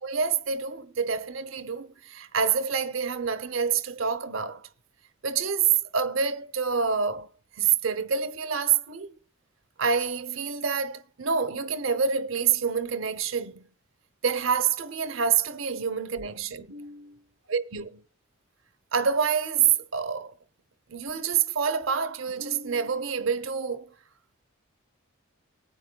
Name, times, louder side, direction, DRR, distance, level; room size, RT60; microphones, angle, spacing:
voice 1, 0.0-4.7 5.2-9.2 9.8-13.7 14.2-17.2 17.5-18.0 18.9-20.3 20.9-23.9, right 6 dB, 70° right, 0.8 m, -27 dB
20.0 x 9.1 x 2.2 m
head